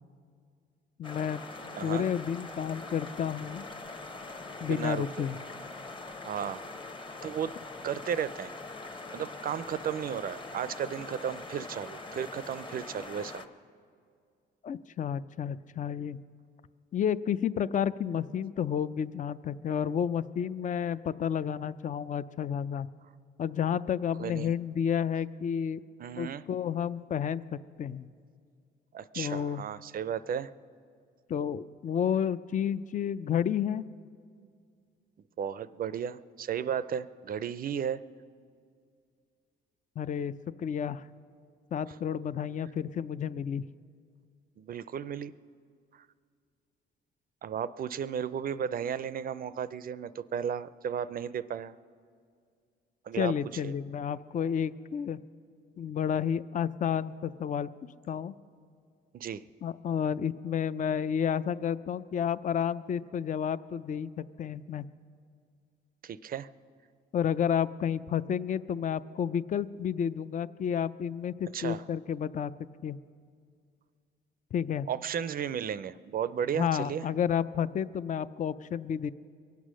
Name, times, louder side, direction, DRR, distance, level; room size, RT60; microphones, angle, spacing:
voice 1, 1.0-1.4 1.8-3.6 4.6-5.4 14.6-16.2 16.9-22.9 23.4-25.8 26.2-27.4 27.8-28.1 29.2-29.6 31.3-33.8 40.0-40.3 40.6-41.1 41.7-43.6 53.1-55.2 55.8-57.7 58.1-58.3 59.6-64.9 67.1-72.5 72.8-73.0 74.5-74.9 76.5-79.1, left 8 dB, 40° left, 16 dB, 0.4 m, -31 dB
sound 1, 1.0-13.5, left 3 dB, 25° left, 1.0 m, -43 dB
voice 2, 1.8-2.1 4.6-5.3 6.2-6.8 7.2-7.6 7.8-8.5 8.9-13.4 24.2-24.5 26.0-26.4 28.9-30.5 35.4-38.0 44.6-45.3 47.4-51.8 53.0-53.3 53.6-53.7 59.1-59.4 66.0-66.5 71.5-71.8 74.9-77.1, right 8 dB, 45° right, 16 dB, 0.5 m, -34 dB
23.0 x 8.3 x 6.2 m, 2.2 s
cardioid pair, 90°, 20 cm